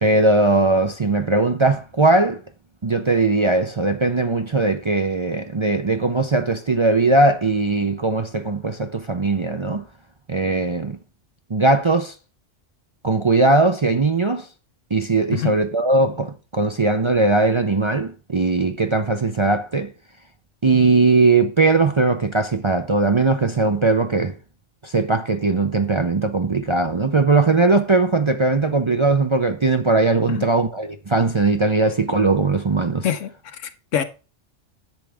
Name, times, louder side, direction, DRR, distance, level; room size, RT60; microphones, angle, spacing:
voice 1, 0.0-2.4 2.8-9.8 10.3-11.0 11.5-12.1 13.0-14.5 14.9-19.9 20.6-24.3 24.8-33.1, right 3 dB, 35° right, 0.5 m, -19 dB
voice 2, 33.0-34.0, left 8 dB, 80° left, 1.3 m, -26 dB
10.5 x 7.6 x 3.4 m
omnidirectional pair, 1.3 m